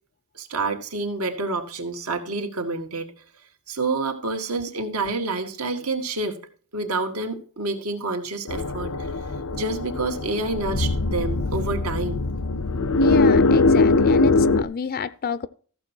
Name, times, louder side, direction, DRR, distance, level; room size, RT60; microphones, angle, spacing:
voice 1, 0.4-3.1 3.7-6.4 6.7-9.1 9.5-12.2, right 3 dB, 80° right, 2.1 m, -28 dB
sound 1, 8.5-14.6, left 3 dB, 80° left, 0.7 m, -21 dB
voice 2, 13.0-15.5, left 6 dB, 45° left, 0.5 m, -29 dB
14.5 x 7.0 x 4.5 m
head